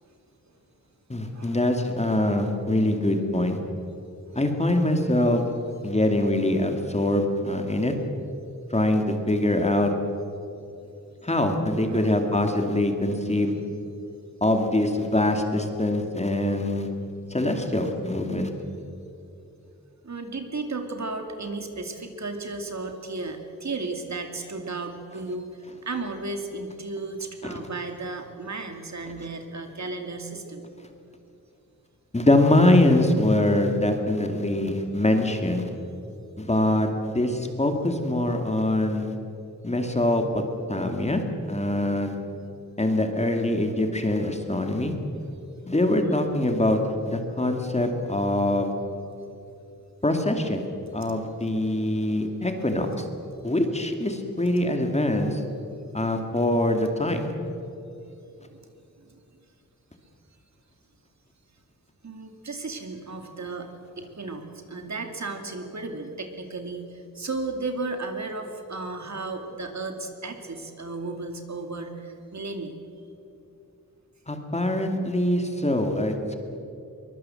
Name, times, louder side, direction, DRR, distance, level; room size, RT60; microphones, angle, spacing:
voice 1, 1.1-3.6 4.3-5.4 5.8-7.9 8.7-9.9 11.2-13.6 14.4-16.9 17.3-18.5 27.4-27.5 32.1-35.7 36.4-39.1 39.6-40.4 40.7-41.2 41.5-42.2 42.8-44.9 45.7-46.8 47.0-48.7 50.0-50.7 50.9-52.9 53.4-55.4 55.9-57.3 74.3-76.4, left 1 dB, 20° left, 4 dB, 2.3 m, -23 dB
voice 2, 11.9-12.4 15.0-15.1 20.0-30.6 45.2-45.4 58.4-58.7 59.0-59.2 62.0-72.7, right 3 dB, 50° right, 5 dB, 2.5 m, -34 dB
23.5 x 21.5 x 7.7 m, 2.7 s
wide cardioid pair, 135°, 34 cm